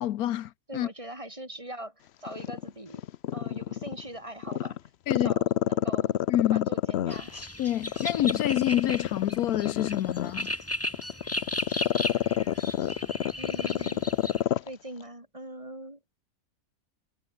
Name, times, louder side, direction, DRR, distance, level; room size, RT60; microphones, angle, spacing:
voice 1, 0.0-0.9 5.1-5.3 6.3-6.7 7.6-10.5, left 12 dB, 75° left, 1.2 m, -28 dB
voice 2, 0.7-3.0 3.3-4.8 5.1-6.2 6.5-7.3 13.4-14.1 14.7-16.0, right 1 dB, 20° right, 4.6 m, -42 dB
Growling, 2.3-4.0 4.4-7.4 7.9-14.7 15.0-15.1, left 11 dB, 60° left, 0.7 m, -28 dB
sound 1, 7.1-14.4, left 1 dB, 10° left, 2.4 m, -36 dB
omnidirectional pair, 1.6 m